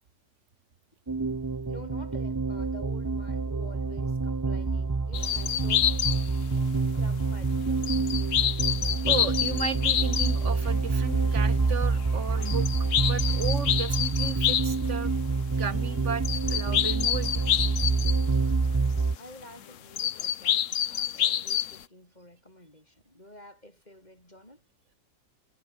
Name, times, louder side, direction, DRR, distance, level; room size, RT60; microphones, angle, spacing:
sound 1, 1.1-19.2, right 4 dB, 25° right, 0.4 m, -27 dB
voice 1, 1.7-5.9 6.9-8.0 19.2-24.7, left 1 dB, 30° left, 8.3 m, -49 dB
sound 2, 5.1-6.6 7.8-14.8 15.4-15.5 16.2-18.3 20.0-21.8, left 10 dB, 70° left, 1.2 m, -28 dB
voice 2, 9.1-12.7 13.0-15.1 15.6-17.4, right 6 dB, 60° right, 1.8 m, -34 dB
omnidirectional pair, 1.4 m